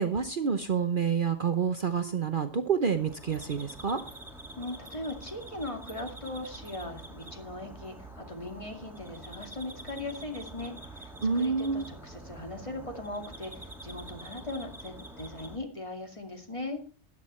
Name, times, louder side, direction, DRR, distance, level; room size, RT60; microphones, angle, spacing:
voice 1, 0.0-4.0 11.2-11.8, right 6 dB, 45° right, 8 dB, 0.9 m, -28 dB
sound 1, 2.9-15.6, right 2 dB, ahead, 2.3 m, -46 dB
voice 2, 4.6-13.5 13.8-16.8, left 2 dB, 25° left, 4 dB, 2.3 m, -39 dB
13.5 x 10.5 x 4.4 m, 0.36 s
omnidirectional pair, 1.3 m